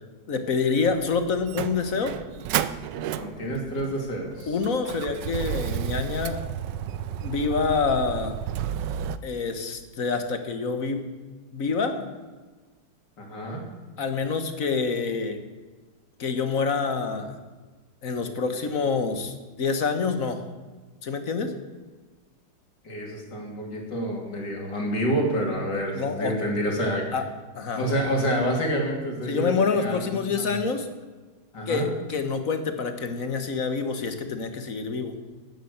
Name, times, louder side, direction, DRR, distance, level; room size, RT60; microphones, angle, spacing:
voice 1, 0.3-2.2 4.5-6.4 7.2-8.3 9.2-11.0 11.5-12.1 14.0-15.4 16.2-17.4 18.0-20.4 21.0-21.5 25.9-26.4 27.1-27.2 27.5-27.8 29.3-30.9 31.7-35.1, left 5 dB, 50° left, 8 dB, 1.7 m, -27 dB
Motor vehicle (road), 0.8-9.2, right 10 dB, 85° right, 1.3 m, -32 dB
voice 2, 3.1-4.6 13.2-13.6 22.8-27.1 27.8-30.0 31.5-31.9, equal, 80° left, 0 dB, 3.6 m, -28 dB
11.5 x 10.0 x 8.0 m, 1.3 s
omnidirectional pair, 1.9 m